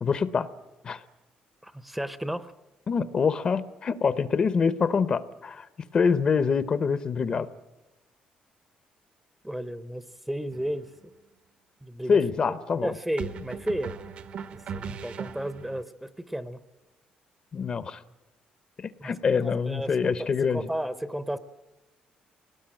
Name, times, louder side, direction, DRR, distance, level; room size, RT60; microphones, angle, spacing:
voice 1, 0.0-0.5 0.8-1.0 2.9-5.7 5.9-7.5 12.1-12.9 17.5-18.0 18.8-20.6, left 5 dB, 35° left, 14 dB, 0.7 m, -25 dB
voice 2, 1.6-2.5 9.4-10.9 11.8-12.2 12.5-12.6 12.8-13.9 14.5-16.6 19.0-19.1 19.4-21.4, right 1 dB, 5° right, 14 dB, 0.7 m, -33 dB
sound 1, 10.5-10.8 13.2-15.8, right 6 dB, 55° right, 1.0 m, -38 dB
21.0 x 18.5 x 8.8 m, 1.0 s
cardioid pair, 150°, 3 cm